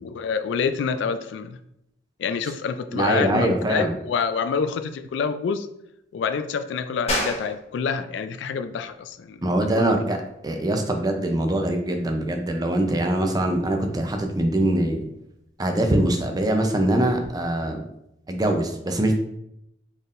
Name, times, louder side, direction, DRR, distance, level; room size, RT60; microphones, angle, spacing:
voice 1, 0.0-1.6 2.2-5.7 6.1-9.4 9.7-10.0, left 6 dB, 75° left, 10 dB, 0.3 m, -27 dB
voice 2, 2.9-3.9 9.4-10.2 10.4-15.0 15.6-17.8 18.3-19.1, right 1 dB, 20° right, 4 dB, 0.5 m, -23 dB
sound 1, 7.1-17.3, left 1 dB, 35° left, 1.0 m, -37 dB
4.3 x 3.5 x 2.5 m, 0.80 s
head